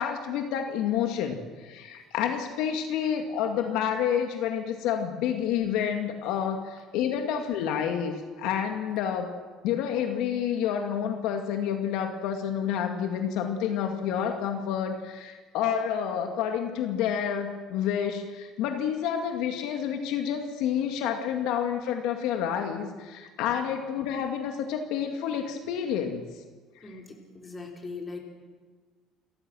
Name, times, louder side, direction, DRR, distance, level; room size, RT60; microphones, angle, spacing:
voice 1, 0.0-9.3 9.6-26.2 26.8-27.0, left 8 dB, 75° left, 4 dB, 2.1 m, -29 dB
voice 2, 26.8-28.2, left 4 dB, 20° left, 1 dB, 4.3 m, -40 dB
29.5 x 14.5 x 6.3 m, 1.4 s
cardioid pair, 125°, 0 cm